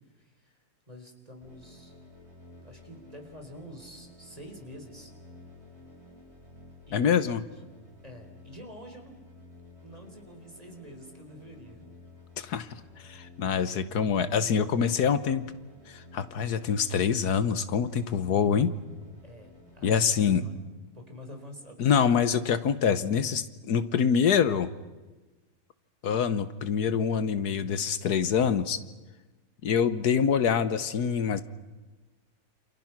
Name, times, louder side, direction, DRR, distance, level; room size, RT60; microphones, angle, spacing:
voice 1, 0.1-0.6 0.9-1.9 2.6-5.1 6.9-7.0 8.0-9.3 9.8-11.8 19.2-20.6 20.9-22.4, equal, 25° right, 4 dB, 4.3 m, -47 dB
sound 1, 1.4-20.0, left 2 dB, 40° right, 6.0 m, -53 dB
voice 2, 6.9-7.4 12.4-12.7 13.0-15.4 15.9-18.7 19.8-20.4 21.8-24.7 26.0-28.8 29.6-31.4, left 7 dB, 80° left, 13 dB, 1.6 m, -25 dB
29.0 x 28.5 x 6.0 m, 1.2 s
omnidirectional pair, 1.7 m